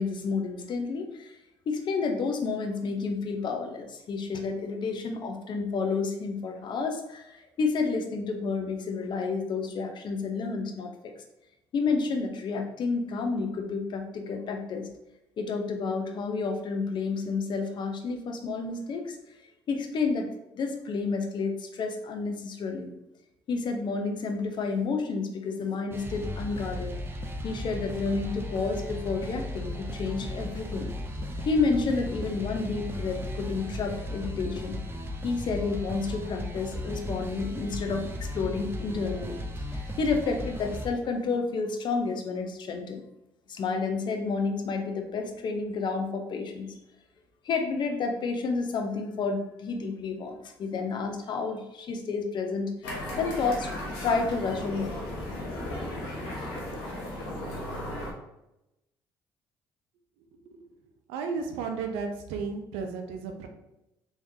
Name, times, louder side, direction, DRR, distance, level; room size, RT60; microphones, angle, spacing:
voice 1, 0.0-1.3 1.7-11.1 11.7-14.9 15.4-19.2 19.7-20.3 20.6-22.9 23.5-26.9 27.4-30.9 31.4-34.8 35.2-39.4 39.7-43.0 43.5-46.7 47.4-52.7 53.2-53.7 54.0-55.0, left 4 dB, 55° left, 4 dB, 0.7 m, -30 dB
sound 1, 25.9-40.9, left 1 dB, 25° right, 0.6 m, -36 dB
sound 2, 52.8-58.1, left 1 dB, 85° left, 0.9 m, -35 dB
voice 2, 60.2-60.7 61.1-63.5, right 5 dB, 85° right, 4 dB, 0.5 m, -34 dB
3.5 x 3.2 x 2.7 m, 0.91 s
supercardioid pair, 70°, 9 cm